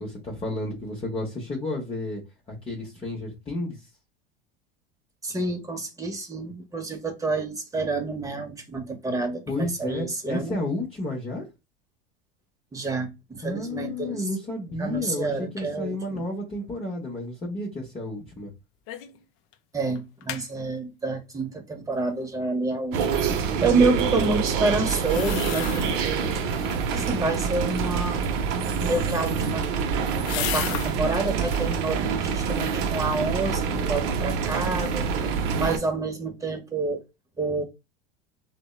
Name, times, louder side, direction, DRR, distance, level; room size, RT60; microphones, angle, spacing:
voice 1, 0.0-2.2 2.5-3.8 9.5-11.5 13.4-18.5, left 2 dB, 20° left, 0.7 m, -31 dB
voice 2, 5.2-10.6 12.7-14.2 14.8-16.3 19.7-23.1 23.4-26.4 26.9-28.3 28.8-29.7 30.3-37.0 37.4-37.6, right 3 dB, 10° right, 0.6 m, -28 dB
sound 1, 18.9-19.2 19.5-19.6 20.0-20.5 25.0-26.2 26.5-27.1 29.0-31.0 31.4-31.8 32.3-32.9 33.3-33.4, left 11 dB, 45° left, 0.4 m, -35 dB
sound 2, 22.9-35.8, right 6 dB, 50° right, 0.5 m, -26 dB
2.7 x 2.1 x 2.2 m
hypercardioid pair, 85°, 30 cm